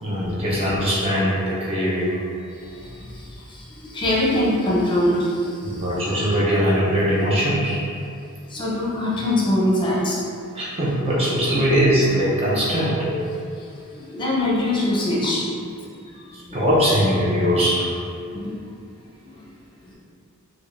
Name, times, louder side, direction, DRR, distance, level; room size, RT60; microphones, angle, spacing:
voice 1, 0.0-2.2 5.6-7.8 10.5-13.3 16.5-17.9, equal, 30° right, -7 dB, 0.6 m, -21 dB
voice 2, 2.6-5.8 8.5-10.2 14.0-16.0 18.3-18.5 19.2-19.4 19.8-19.9, left 1 dB, 20° left, -5 dB, 0.6 m, -23 dB
4.7 x 2.2 x 2.5 m, 2.4 s
head